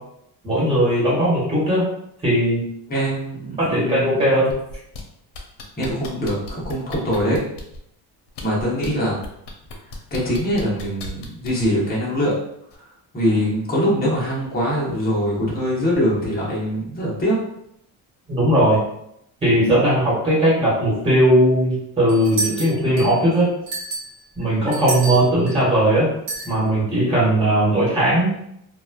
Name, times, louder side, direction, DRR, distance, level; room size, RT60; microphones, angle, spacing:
voice 1, 0.4-1.8 2.2-2.6 3.6-4.5 18.3-18.8 19.4-23.5 24.4-26.1 26.4-28.3, right 1 dB, 15° right, -7 dB, 1.4 m, -18 dB
voice 2, 2.9-4.2 5.8-7.4 8.4-9.1 10.1-12.3 13.1-17.4, equal, 20° left, -6 dB, 1.0 m, -23 dB
sound 1, 4.5-5.0 5.3-7.8 8.3-8.9 9.2-11.7 12.7-12.8, left 3 dB, 80° left, 0.7 m, -35 dB
sound 2, 22.1-23.2 23.7-25.6 26.3-26.5, right 3 dB, 85° right, 1.2 m, -29 dB
3.0 x 2.3 x 2.3 m, 0.76 s
cardioid pair, 135°, 41 cm